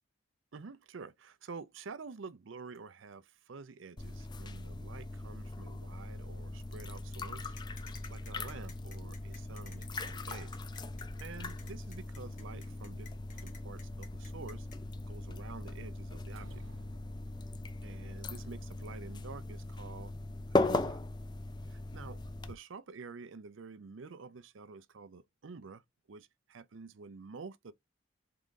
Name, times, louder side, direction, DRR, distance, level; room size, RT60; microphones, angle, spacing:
voice 1, 0.5-7.5 8.1-10.5 11.2-13.1 13.4-14.7 15.1-16.6 17.8-20.1 20.5-21.0 21.7-25.8 26.1-27.7, right 4 dB, 70° right, 0.5 m, -49 dB
sound 1, 4.0-22.5, left 2 dB, 20° left, 0.3 m, -39 dB
sound 2, 7.6-14.8, left 6 dB, 40° left, 1.1 m, -54 dB
sound 3, 16.3-17.9, right 1 dB, 85° right, 1.0 m, -57 dB
3.8 x 3.5 x 3.7 m
head